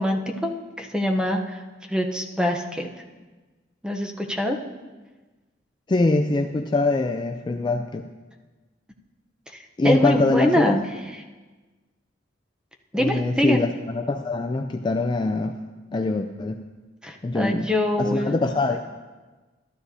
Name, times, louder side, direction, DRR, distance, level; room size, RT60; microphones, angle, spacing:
voice 1, 0.0-1.6 1.9-2.9 3.8-4.6 9.8-11.2 12.9-13.6 17.0-18.4, left 1 dB, 5° right, 3 dB, 0.7 m, -24 dB
voice 2, 5.9-8.1 9.8-10.7 12.9-15.6 15.9-16.6 17.2-17.7 18.0-18.8, left 2 dB, 25° left, 5 dB, 0.3 m, -23 dB
12.5 x 12.5 x 2.7 m, 1.3 s
head